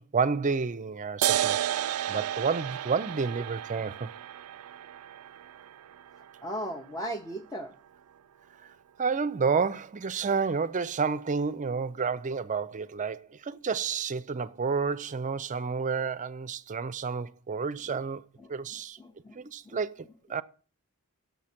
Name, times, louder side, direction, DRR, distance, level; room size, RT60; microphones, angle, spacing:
voice 1, 0.0-4.1 9.0-18.2 18.5-19.0 19.3-20.4, right 5 dB, 35° right, 0.5 m, -30 dB
sound 1, 1.2-8.2, right 11 dB, 90° right, 0.4 m, -33 dB
voice 2, 6.4-7.7 18.4-18.5 19.0-19.4 19.7-19.8, right 1 dB, 15° left, 0.6 m, -37 dB
9.8 x 7.1 x 5.8 m
head